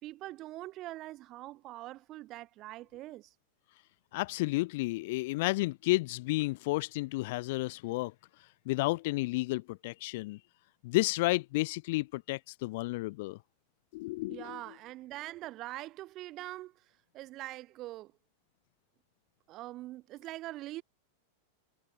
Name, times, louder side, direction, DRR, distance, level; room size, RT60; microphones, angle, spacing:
voice 1, 0.0-3.3 14.3-16.7 17.1-18.1 19.5-20.8, right 16 dB, 35° right, 4.0 m, -43 dB
voice 2, 4.1-8.1 8.4-10.4 10.8-13.4 13.9-14.6, left 21 dB, 55° left, 2.7 m, -32 dB
supercardioid pair, 145°, 0 cm